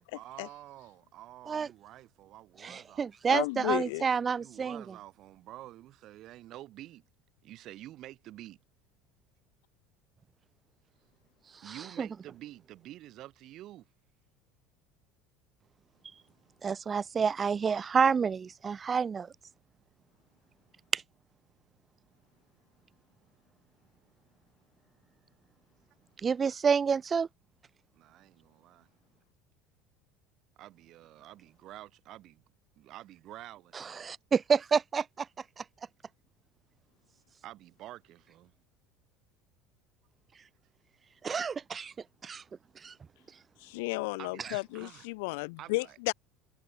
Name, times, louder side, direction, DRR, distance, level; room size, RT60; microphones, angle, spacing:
voice 1, 0.0-3.1 4.4-7.0 7.4-8.6 11.6-13.9 27.9-28.9 30.6-32.4 32.8-34.1 37.4-38.5 44.2-45.1 45.6-46.0, right 14 dB, 45° right, 5.8 m, -49 dB
voice 2, 2.6-4.8 11.7-12.1 16.6-19.3 20.9-21.0 26.2-27.3 33.7-35.3 35.6-35.7 41.2-41.9 42.2-42.4 42.8-42.9, right 6 dB, 20° right, 0.6 m, -29 dB
voice 3, 3.3-4.0 43.6-46.1, left 26 dB, 80° left, 2.0 m, -33 dB
cardioid pair, 150°, 0 cm